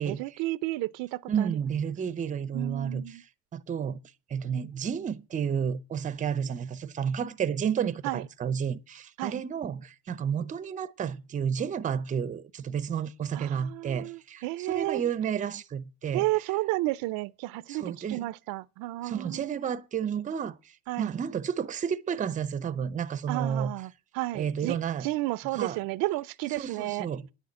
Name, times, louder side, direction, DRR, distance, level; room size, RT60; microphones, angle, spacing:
voice 1, 0.0-1.5 2.5-3.2 8.0-8.2 9.2-9.4 13.3-15.0 16.1-19.6 20.9-21.1 23.3-27.1, right 19 dB, 85° right, 0.6 m, -32 dB
voice 2, 1.3-3.3 3.5-4.0 4.3-16.2 17.7-18.3 19.0-20.6 21.0-23.7 24.3-25.1 25.5-25.8 26.6-27.2, right 7 dB, 25° right, 0.6 m, -31 dB
10.0 x 6.5 x 8.6 m
cardioid pair, 155°, 33 cm